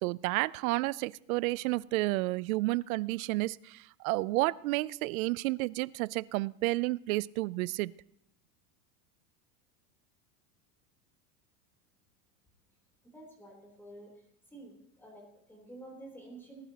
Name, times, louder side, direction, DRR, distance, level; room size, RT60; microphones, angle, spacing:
voice 1, 0.0-7.9, right 21 dB, 65° right, 21 dB, 0.5 m, -31 dB
voice 2, 13.0-14.1 14.5-16.6, right 2 dB, 5° left, -1 dB, 3.5 m, -50 dB
19.5 x 11.0 x 2.9 m, 0.73 s
supercardioid pair, 155°, 46 cm